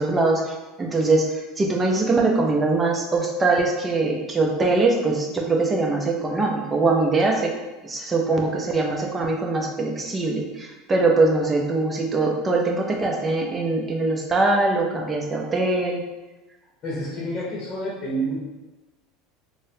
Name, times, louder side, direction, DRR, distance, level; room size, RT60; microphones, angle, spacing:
voice 1, 0.0-7.5 7.8-16.0, right 3 dB, 25° right, 1 dB, 0.6 m, -22 dB
voice 2, 16.8-18.4, right 1 dB, 40° left, -4 dB, 0.8 m, -28 dB
3.9 x 2.1 x 2.7 m, 1.1 s
supercardioid pair, 100°, 0 cm